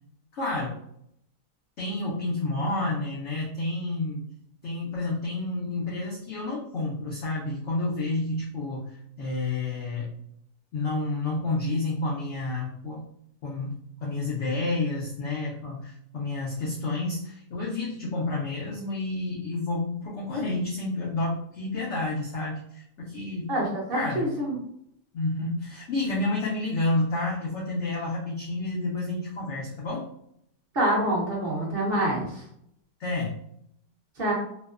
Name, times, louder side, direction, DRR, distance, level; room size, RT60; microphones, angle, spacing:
voice 1, 0.3-0.8 1.8-4.2 4.6-8.9 9.2-10.1 10.7-13.1 13.4-13.7 14.0-23.5 23.9-24.3 25.1-30.0 33.0-33.3, left 2 dB, 70° left, -4 dB, 0.6 m, -30 dB
voice 2, 23.5-24.5 30.7-32.4 34.2-34.3, right 1 dB, 45° right, -4 dB, 0.8 m, -26 dB
2.9 x 2.0 x 2.3 m, 0.72 s
omnidirectional pair, 1.8 m